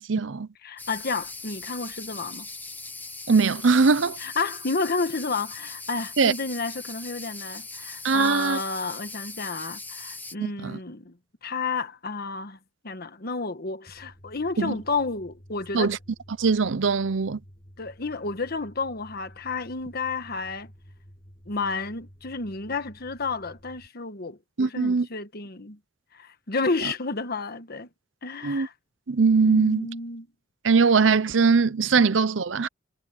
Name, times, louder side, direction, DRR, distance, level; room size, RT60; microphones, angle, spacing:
voice 1, 0.1-0.5 3.3-4.2 6.2-6.3 8.0-8.6 10.6-10.8 14.6-14.8 15.7-16.0 16.4-17.4 24.6-25.1 28.4-28.7 29.1-29.9 30.6-32.7, right 4 dB, 75° right, 0.7 m, -21 dB
voice 2, 0.6-2.5 4.2-11.1 11.4-12.6 12.8-16.0 17.8-20.7 21.5-25.8 26.1-27.9 28.2-28.7 29.4-30.3, left 4 dB, 55° left, 1.4 m, -31 dB
sound 1, 0.8-10.3, left 3 dB, 10° left, 1.2 m, -40 dB
sound 2, 13.9-23.9, equal, 30° left, 7.6 m, -51 dB
head